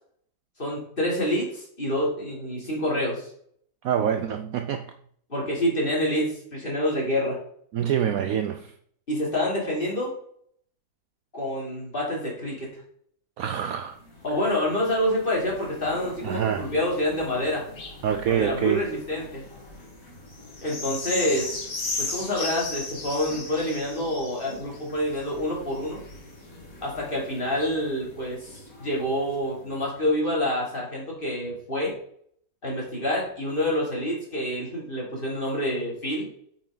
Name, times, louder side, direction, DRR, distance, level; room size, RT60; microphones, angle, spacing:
voice 1, 0.6-3.3 5.3-7.4 9.1-10.1 11.3-12.7 14.2-17.6 18.3-19.5 20.6-21.6 22.0-26.0 26.8-31.9 32.6-36.3, left 1 dB, 30° left, 3.3 m, -27 dB
voice 2, 3.8-4.9 7.7-8.7 13.4-14.0 16.2-16.7 18.0-18.9, right 9 dB, 70° right, 0.9 m, -26 dB
sound 1, 13.8-29.6 30.3-30.4, left 3 dB, 55° left, 2.5 m, -38 dB
8.7 x 5.9 x 4.0 m
omnidirectional pair, 1.8 m